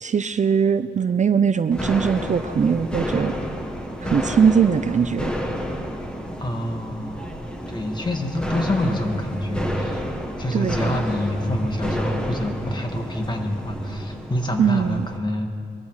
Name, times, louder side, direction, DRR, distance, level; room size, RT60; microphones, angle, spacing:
voice 1, 0.0-3.3 4.0-5.3 10.5-11.0 14.6-15.1, right 6 dB, 40° right, 12 dB, 0.5 m, -20 dB
sound 1, 1.7-15.2, equal, 5° left, 1.6 m, -30 dB
voice 2, 6.4-10.0 10.4-15.5, left 1 dB, 20° left, 3 dB, 1.9 m, -27 dB
20.5 x 13.5 x 4.8 m, 2.4 s
cardioid pair, 90°, 20 cm